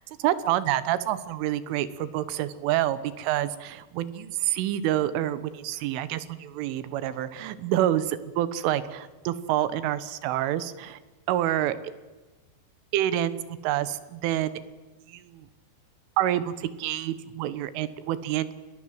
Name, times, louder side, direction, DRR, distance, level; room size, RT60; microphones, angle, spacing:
voice 1, 0.2-11.0 11.3-11.8 12.9-14.5 15.1-15.5 16.2-18.5, right 12 dB, 85° right, 15 dB, 3.7 m, -27 dB
28.0 x 21.0 x 7.7 m, 1.2 s
omnidirectional pair, 5.5 m